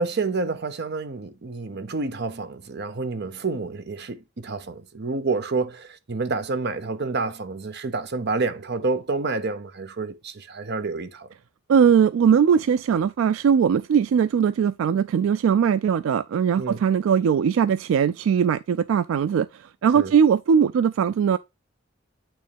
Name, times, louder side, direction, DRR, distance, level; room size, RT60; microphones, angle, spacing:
voice 1, 0.0-11.3 16.6-16.8 19.9-20.1, right 3 dB, 55° right, 0.7 m, -28 dB
voice 2, 11.7-21.4, right 7 dB, 80° right, 0.3 m, -20 dB
8.8 x 3.7 x 3.4 m
head